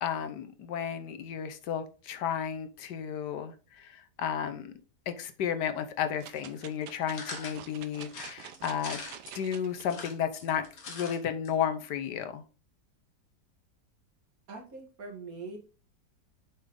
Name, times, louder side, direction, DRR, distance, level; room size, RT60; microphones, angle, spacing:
voice 1, 0.0-4.7 5.1-9.0 9.3-12.4, left 8 dB, 80° left, 1.4 m, -33 dB
sound 1, 6.2-9.9 10.4-10.5, right 10 dB, 80° right, 1.3 m, -47 dB
sound 2, 7.1-7.6 8.1-9.4 9.8-11.2 11.4-11.5 11.8-11.9, left 4 dB, 60° left, 1.9 m, -42 dB
voice 2, 14.5-15.6, right 3 dB, 55° right, 2.0 m, -42 dB
7.3 x 5.2 x 3.7 m
omnidirectional pair, 1.8 m